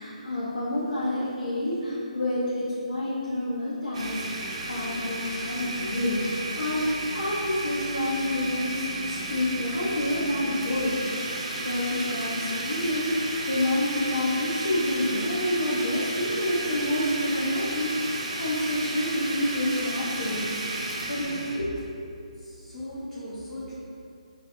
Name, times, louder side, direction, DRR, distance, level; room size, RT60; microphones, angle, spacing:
voice 1, 0.0-4.2 4.7-10.9 11.2-11.3 11.6-20.5 21.1-21.8, left 1 dB, 85° left, -9 dB, 0.5 m, -28 dB
Domestic sounds home sounds, 3.9-21.6, right 2 dB, 55° right, 0.4 m, -33 dB
voice 2, 22.4-23.7, left 1 dB, 10° left, -12 dB, 0.5 m, -38 dB
2.2 x 2.1 x 2.9 m, 2.5 s
figure-of-eight pair, 145°, 4 cm